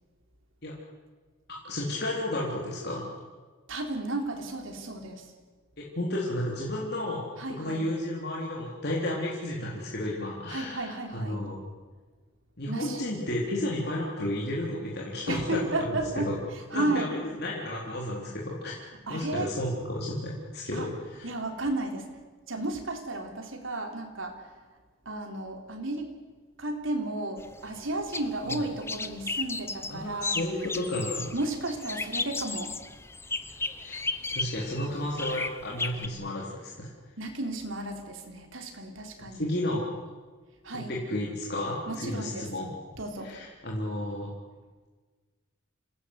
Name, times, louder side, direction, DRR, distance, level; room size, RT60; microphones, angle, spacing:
voice 1, 1.6-3.1 5.8-11.6 12.6-15.6 15.9-16.3 16.7-18.7 19.1-21.3 28.4-28.6 29.9-31.3 33.8-34.0 34.3-36.9 39.3-39.9 40.7-42.7 43.2-44.3, left 1 dB, 50° left, -3 dB, 3.9 m, -32 dB
voice 2, 3.7-5.3 7.4-7.8 10.5-11.4 12.7-13.0 15.3-16.3 16.7-17.1 19.1-19.5 20.7-20.9 21.2-22.1 22.5-24.5 25.1-26.1 26.6-30.4 31.3-32.7 37.2-39.4 40.6-40.9 41.9-42.5 42.9-43.3, right 2 dB, 70° right, 4 dB, 3.7 m, -33 dB
sound 1, 27.4-36.1, left 3 dB, 10° left, 0.9 m, -35 dB
27.5 x 18.0 x 8.2 m, 1.4 s
head